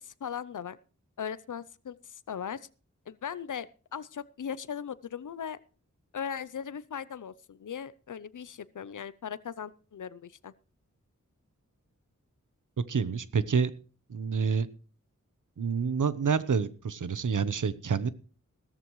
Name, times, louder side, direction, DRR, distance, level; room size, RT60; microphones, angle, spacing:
voice 1, 0.0-0.8 1.2-2.6 3.1-5.6 6.1-10.5, left 7 dB, 85° left, 17 dB, 0.6 m, -38 dB
voice 2, 12.9-13.7 14.1-14.7 15.6-18.1, right 6 dB, 90° right, 15 dB, 0.9 m, -28 dB
16.5 x 14.0 x 3.1 m, 0.38 s
wide cardioid pair, 80°, 30 cm